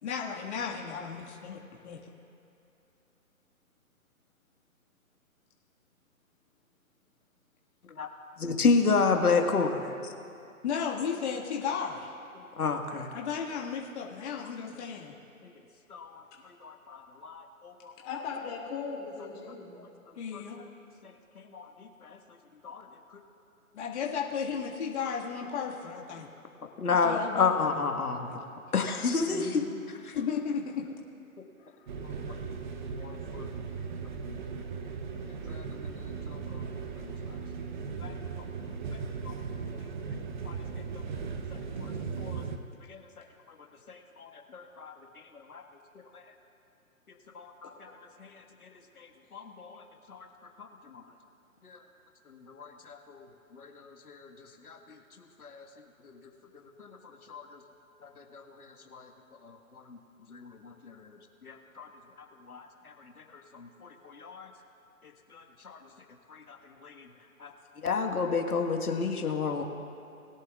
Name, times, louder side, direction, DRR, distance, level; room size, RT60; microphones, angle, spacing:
voice 1, 0.0-2.0 10.6-12.1 13.1-15.1 20.2-20.6 23.7-26.3 27.0-27.8 28.3-28.4 29.2-29.8 30.1-30.9, left 6 dB, 50° left, -2 dB, 2.0 m, -34 dB
voice 2, 8.4-9.9 12.6-13.1 15.9-16.2 16.6-17.9 20.3-20.4 21.0-22.2 22.6-22.8 26.8-28.3 28.7-30.2 32.8-33.5 34.3-34.4 35.3-35.6 35.9-36.0 36.3-37.1 38.0-38.4 38.9-39.3 40.4-40.5 41.8-41.9 42.2-42.4 42.9-43.0 43.9-44.9 45.5-45.6 46.1-46.2 47.3-47.9 48.2-48.7 49.0-49.8 50.1-50.3 50.6-51.0 51.6-51.8 52.3-53.3 53.5-54.8 55.4-55.7 56.0-56.1 56.8-56.9 57.3-57.6 58.0-59.1 59.4-60.0 60.3-61.9 62.2-62.9 63.3-64.5 65.3-65.8 66.3-67.1 67.4-67.5 67.8-69.6, left 4 dB, 85° left, 3 dB, 1.7 m, -32 dB
voice 3, 18.0-19.8 31.6-31.9, left 5 dB, 30° left, -3 dB, 2.7 m, -38 dB
sound 1, 31.9-42.6, right 5 dB, 35° right, 0.8 m, -37 dB
21.5 x 11.0 x 2.4 m, 2.7 s
hypercardioid pair, 150°, 43 cm